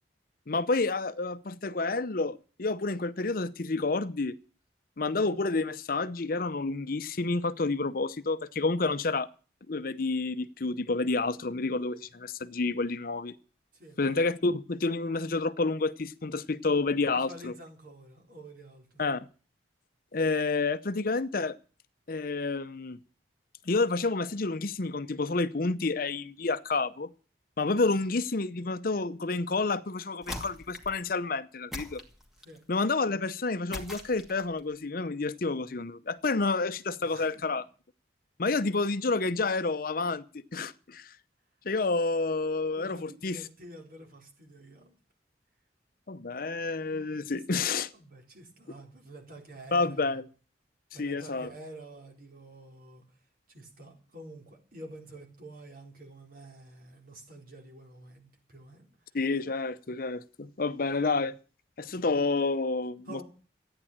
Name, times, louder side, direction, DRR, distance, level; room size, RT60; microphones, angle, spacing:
voice 1, 0.5-4.4 5.0-9.3 9.7-13.4 14.0-17.5 19.0-19.3 20.1-21.6 22.1-23.0 23.7-27.1 27.6-32.0 32.7-37.7 38.4-41.1 41.6-43.4 46.1-47.9 49.7-50.2 51.0-51.5 59.1-61.3 61.8-63.2, left 3 dB, 50° left, 13 dB, 0.7 m, -29 dB
voice 2, 17.1-19.2 27.9-28.1 32.4-32.6 37.0-37.6 42.7-45.0 47.3-50.1 50.9-53.0 53.5-58.9 63.0-63.2, right 1 dB, 55° right, 1 dB, 4.5 m, -48 dB
sound 1, 30.2-31.0 31.7-32.6 33.7-34.6, left 1 dB, ahead, 2.3 m, -41 dB
14.0 x 9.8 x 8.7 m, 0.38 s
head